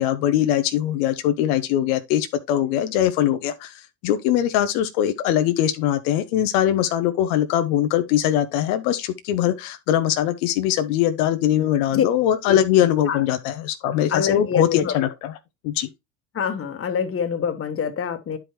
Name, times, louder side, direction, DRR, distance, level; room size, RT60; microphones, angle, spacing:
voice 1, 0.0-3.7 4.0-15.3 15.6-15.9, left 11 dB, 75° left, 0.9 m, -21 dB
voice 2, 14.1-15.0 16.3-18.4, left 7 dB, 30° left, 1.3 m, -25 dB
9.9 x 4.9 x 3.1 m
supercardioid pair, 95°, 45 cm